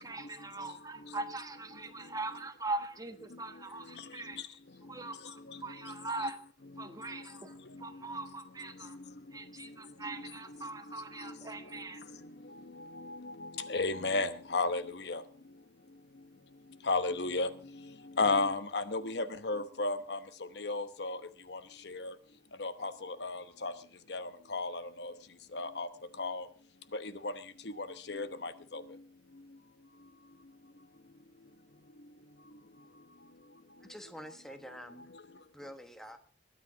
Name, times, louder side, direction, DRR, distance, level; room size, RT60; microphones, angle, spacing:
voice 1, 0.0-4.4 4.9-6.4 6.8-9.0 9.3-12.0, right 2 dB, 20° right, 8 dB, 1.2 m, -41 dB
voice 2, 13.6-15.2 16.9-17.5 18.2-20.2 20.6-21.2 21.5-21.6 21.9-22.1 22.6-23.7 24.1-25.1 25.5-25.9 26.2-26.4 26.9-27.3 27.8-28.8, left 3 dB, 65° left, 11 dB, 1.0 m, -33 dB
voice 3, 33.8-35.1 35.5-36.2, equal, ahead, 8 dB, 1.2 m, -47 dB
21.5 x 9.2 x 4.8 m, 0.41 s
head